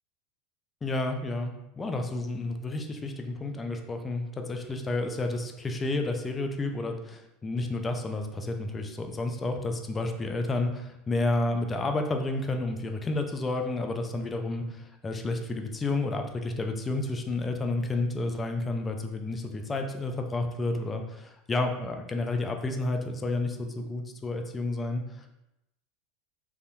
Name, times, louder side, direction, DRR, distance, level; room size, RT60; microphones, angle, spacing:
voice 1, 0.8-25.3, left 2 dB, 20° left, 4 dB, 0.4 m, -31 dB
3.3 x 2.6 x 2.2 m, 0.89 s
hypercardioid pair, 90°, 0 cm